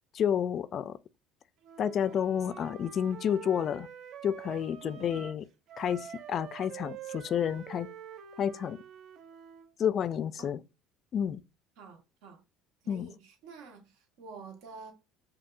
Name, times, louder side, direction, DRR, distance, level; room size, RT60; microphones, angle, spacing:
voice 1, 0.1-1.0 1.8-3.9 4.2-5.4 5.8-7.9 8.4-8.8 9.8-10.6 11.1-11.4 12.9-13.1, left 8 dB, 45° left, 0.3 m, -30 dB
Wind instrument woodwind instrument, 1.6-5.4 5.7-9.7, right 9 dB, 60° right, 0.5 m, -46 dB
voice 2, 4.8-5.1 10.4-10.6 11.8-12.4 12.8-14.9, right 4 dB, 80° right, 1.2 m, -49 dB
5.2 x 2.7 x 2.5 m
supercardioid pair, 110°, 0 cm